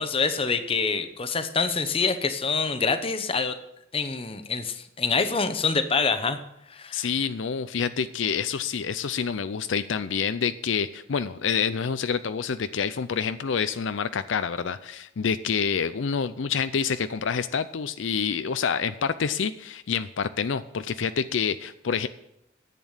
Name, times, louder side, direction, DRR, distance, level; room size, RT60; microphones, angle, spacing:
voice 1, 0.0-3.6 3.9-6.4 6.7-7.1, left 4 dB, 30° left, 9 dB, 0.9 m, -26 dB
voice 2, 6.9-22.1, left 6 dB, 75° left, 12 dB, 0.5 m, -27 dB
10.5 x 8.5 x 7.2 m, 0.83 s
head